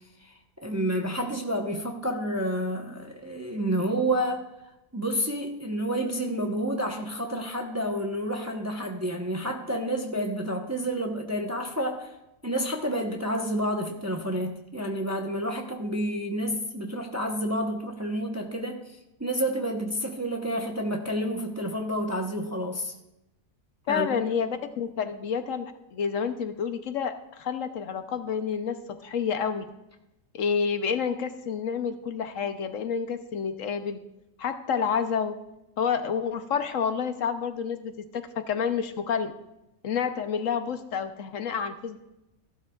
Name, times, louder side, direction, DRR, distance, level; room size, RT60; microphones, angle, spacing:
voice 1, 0.6-4.4 4.9-12.1 12.4-22.9 23.9-24.2, equal, 15° right, 2 dB, 0.8 m, -29 dB
voice 2, 23.9-29.6 30.3-34.0 34.4-35.4 35.8-39.3 39.8-42.0, left 6 dB, 70° left, 9 dB, 1.1 m, -29 dB
15.5 x 12.0 x 2.4 m, 0.92 s
omnidirectional pair, 1.5 m